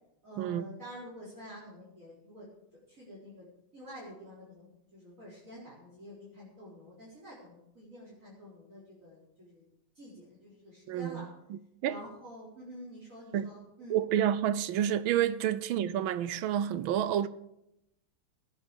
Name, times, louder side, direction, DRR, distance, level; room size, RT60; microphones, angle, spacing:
voice 1, 0.2-2.5 2.9-3.5 3.7-9.6 9.9-11.3 11.8-14.0, equal, 35° right, 4.8 m, -48 dB
voice 2, 10.9-11.3 11.8-12.0 13.3-13.5 13.9-17.3, right 10 dB, 75° right, 1.3 m, -29 dB
17.0 x 9.9 x 5.2 m
omnidirectional pair, 2.4 m